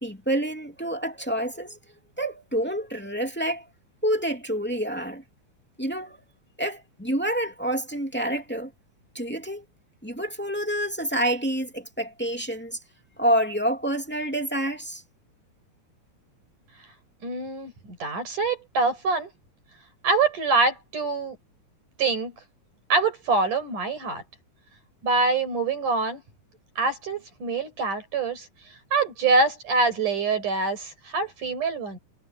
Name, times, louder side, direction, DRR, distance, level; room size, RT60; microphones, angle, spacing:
voice 1, 0.0-1.8 2.2-3.7 4.0-5.2 5.8-6.2 6.6-8.7 9.1-9.6 10.0-12.8 13.2-15.0, right 1 dB, 5° left, 2.0 m, -28 dB
voice 2, 17.2-19.3 20.0-21.4 22.0-22.3 22.9-24.2 25.0-26.2 26.8-28.5 28.9-32.0, right 3 dB, 70° right, 7.2 m, -25 dB
omnidirectional pair, 3.7 m